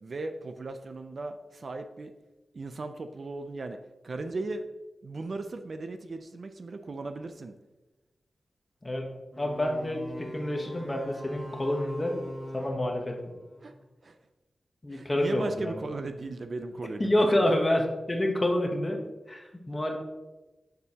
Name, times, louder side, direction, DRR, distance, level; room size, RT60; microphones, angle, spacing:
voice 1, 0.0-2.1 2.5-3.8 4.0-4.6 5.0-7.5 13.6-13.7 14.0-14.2 14.9-17.6, right 3 dB, 50° right, 8 dB, 0.4 m, -37 dB
voice 2, 8.8-12.2 12.5-13.3 14.8-15.7 17.0-19.0 19.3-20.0, left 1 dB, 20° left, 2 dB, 1.0 m, -28 dB
sound 1, 9.3-13.8, equal, 5° right, 1.2 m, -42 dB
6.9 x 6.7 x 2.8 m, 1.1 s
wide cardioid pair, 145°, 0 cm